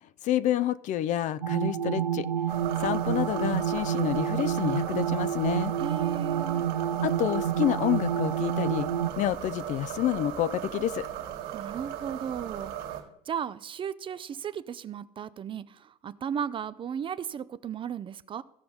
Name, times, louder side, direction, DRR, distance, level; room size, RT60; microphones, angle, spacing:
voice 1, 0.2-5.7 7.0-8.9 9.2-11.1, left 12 dB, 40° left, 16 dB, 0.4 m, -29 dB
sound 1, 1.4-9.1, right 9 dB, 85° right, 0.5 m, -29 dB
sound 2, 2.5-13.0, right 11 dB, 60° right, 1.9 m, -37 dB
voice 2, 5.8-6.7 11.5-12.7 13.3-18.4, right 8 dB, 25° right, 16 dB, 0.4 m, -35 dB
15.0 x 5.5 x 4.0 m, 0.80 s
figure-of-eight pair, 70°, 20 cm